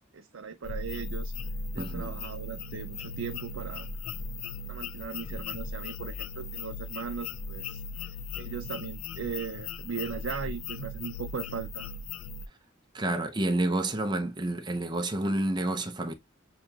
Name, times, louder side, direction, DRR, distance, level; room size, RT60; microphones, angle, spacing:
voice 1, 0.0-1.3 1.7-3.9 4.7-7.8 8.4-11.9, right 6 dB, 75° right, 0.5 m, -38 dB
sound 1, 0.6-12.5, left 3 dB, 85° left, 0.4 m, -38 dB
voice 2, 1.8-2.2 12.9-16.1, right 1 dB, 20° right, 0.7 m, -29 dB
7.0 x 3.0 x 2.3 m
head